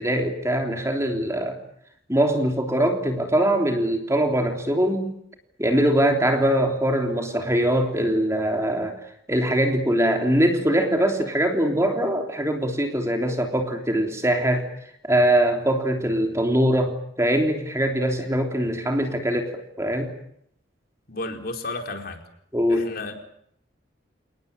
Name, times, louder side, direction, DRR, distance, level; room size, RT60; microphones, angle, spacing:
voice 1, 0.0-1.6 2.1-5.1 5.6-9.0 9.3-14.7 15.0-20.1 22.5-22.9, right 1 dB, 15° right, 4 dB, 3.4 m, -22 dB
voice 2, 21.1-22.2 22.7-23.2, left 2 dB, 50° left, 4 dB, 4.5 m, -32 dB
29.5 x 19.0 x 8.7 m, 0.72 s
head